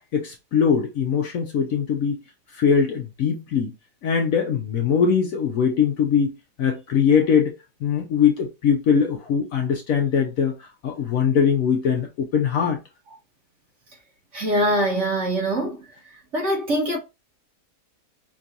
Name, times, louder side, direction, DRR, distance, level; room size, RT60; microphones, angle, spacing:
voice 1, 0.1-2.2 2.5-3.7 4.0-7.5 7.8-12.8, left 7 dB, 65° left, 0.9 m, -21 dB
voice 2, 14.3-15.8 16.3-17.0, right 1 dB, 45° right, 1.7 m, -23 dB
5.2 x 2.4 x 2.7 m
omnidirectional pair, 1.8 m